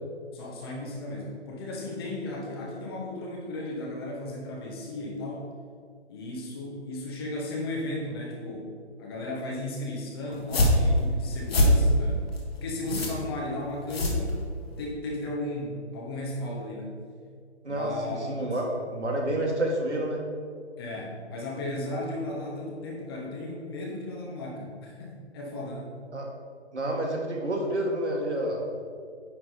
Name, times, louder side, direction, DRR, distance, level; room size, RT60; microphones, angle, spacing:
voice 1, 0.3-5.5 6.1-12.3 12.6-14.4 14.8-16.9 17.7-18.6 20.8-26.0, left 1 dB, 20° left, -2 dB, 1.0 m, -35 dB
sound 1, 10.3-14.8, left 1 dB, 60° left, 1.5 m, -24 dB
voice 2, 17.6-20.2 26.1-26.3 26.7-28.6, right 1 dB, 75° right, -1 dB, 1.8 m, -29 dB
9.6 x 3.7 x 4.0 m, 2.2 s
figure-of-eight pair, 150°, 34 cm